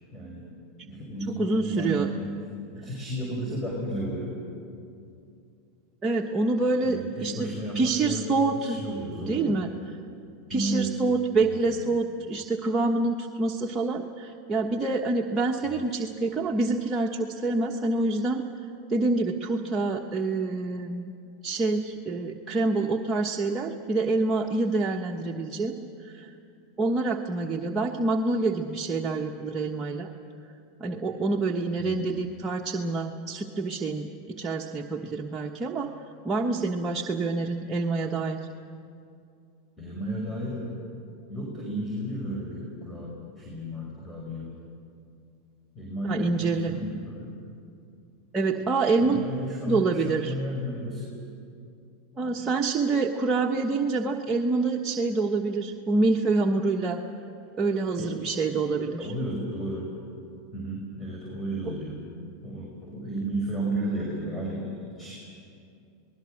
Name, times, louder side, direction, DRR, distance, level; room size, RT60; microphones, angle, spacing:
voice 1, 0.1-0.5 0.8-2.4 2.7-4.4 6.8-9.6 10.5-11.0 11.5-11.8 15.6-15.8 31.8-32.2 39.8-40.8 41.3-44.5 45.8-47.4 49.0-51.1 58.0-58.1 59.0-59.9 60.5-62.0 62.4-65.2, right 1 dB, 10° left, -3 dB, 5.6 m, -33 dB
voice 2, 1.4-2.1 6.0-8.8 9.3-9.7 10.5-18.4 18.9-21.1 21.4-26.3 26.8-30.1 30.8-35.9 36.2-38.4 46.0-46.8 48.3-49.2 49.7-50.3 52.2-57.0 57.6-59.1, right 3 dB, 25° right, 0 dB, 1.2 m, -26 dB
27.5 x 20.0 x 6.5 m, 2.5 s
hypercardioid pair, 100°, 0 cm